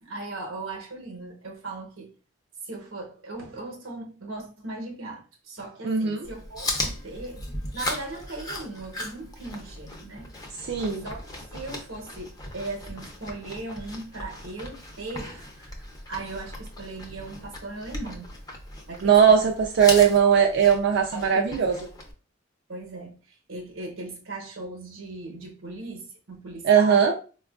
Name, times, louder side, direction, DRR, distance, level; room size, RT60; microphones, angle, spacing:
voice 1, 0.0-2.1 2.6-7.5 7.7-10.3 10.6-10.7 11.0-11.2 11.5-18.3 18.9-19.4 21.1-21.7 22.7-27.0, right 2 dB, 90° right, 0.9 m, -38 dB
voice 2, 5.8-6.2 10.7-11.1 19.0-21.8 26.6-27.1, right 7 dB, 55° right, 0.4 m, -19 dB
Chewing mastication, 6.2-22.1, left 1 dB, 20° left, 0.6 m, -37 dB
4.3 x 2.3 x 2.3 m
head